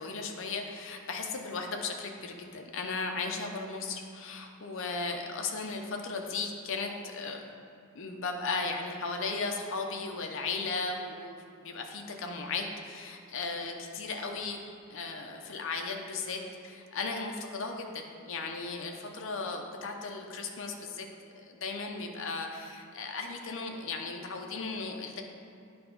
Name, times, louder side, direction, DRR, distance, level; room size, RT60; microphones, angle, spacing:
voice 1, 0.0-7.4 7.9-14.6 14.9-25.2, left 4 dB, 60° left, 3 dB, 0.7 m, -36 dB
9.1 x 3.4 x 5.3 m, 2.6 s
head